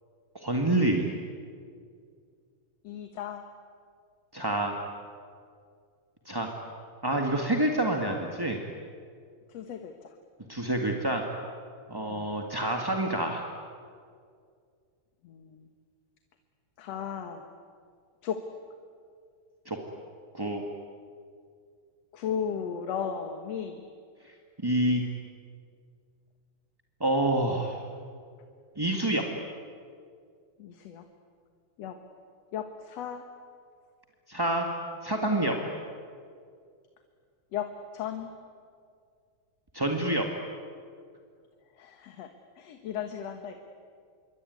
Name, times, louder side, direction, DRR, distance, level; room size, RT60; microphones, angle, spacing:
voice 1, 0.3-1.1 4.3-4.8 6.2-6.5 7.0-8.6 10.5-11.2 11.9-13.4 19.6-19.8 20.3-20.6 24.6-25.0 27.0-27.8 28.8-29.2 34.3-34.7 35.0-35.6 39.7-40.3, right 1 dB, 10° right, 2 dB, 1.2 m, -27 dB
voice 2, 2.8-3.5 9.5-10.2 12.1-12.4 15.2-15.7 16.8-17.4 18.2-18.4 22.1-23.9 30.6-31.0 31.8-32.0 32.5-33.3 37.5-38.3 41.8-43.6, left 8 dB, 65° left, 7 dB, 2.4 m, -36 dB
26.5 x 23.5 x 9.6 m, 2.2 s
omnidirectional pair, 3.3 m